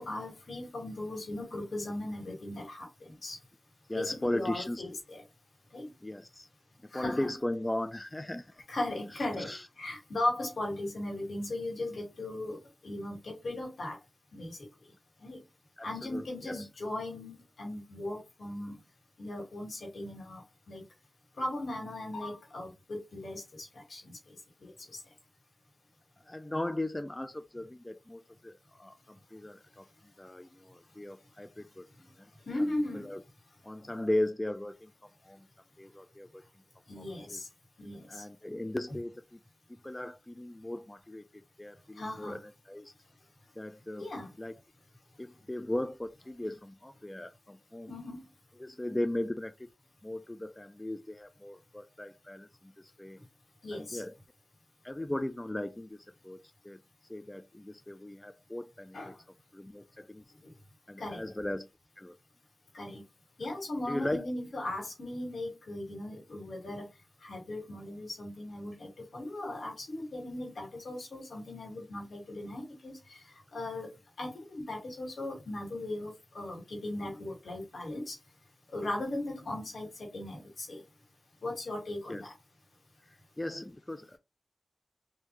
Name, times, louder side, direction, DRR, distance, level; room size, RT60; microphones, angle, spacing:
voice 1, 0.0-3.4 3.9-5.2 5.7-5.9 6.9-7.3 8.7-9.5 9.8-12.6 12.8-14.0 14.3-14.6 15.2-15.4 15.8-18.7 19.2-20.8 21.4-24.1 24.6-24.7 32.5-33.1 36.9-37.5 37.8-38.2 42.0-42.4 44.0-44.3 47.9-48.2 53.6-54.0 58.9-59.1 61.0-61.2 62.7-63.0 63.4-66.9 67.2-73.2 73.5-73.9 74.2-78.2 78.7-80.8 81.4-82.3, left 1 dB, 80° left, 1.9 m, -37 dB
voice 2, 3.9-4.8 6.0-6.5 6.9-8.5 9.1-9.7 15.8-16.7 26.3-29.9 30.2-31.9 32.2-32.3 32.6-33.2 33.6-35.5 35.8-36.4 37.0-37.1 37.3-37.4 38.1-39.4 39.8-42.9 43.6-44.1 44.4-44.6 45.2-47.9 48.6-49.7 50.0-53.2 53.7-54.1 54.8-56.4 56.6-56.8 57.1-59.1 59.5-60.2 60.9-61.7 62.0-62.2 63.9-64.3 82.1-82.3 83.4-84.2, left 1 dB, 20° left, 0.3 m, -37 dB
3.7 x 2.7 x 3.0 m
cardioid pair, 50°, 0 cm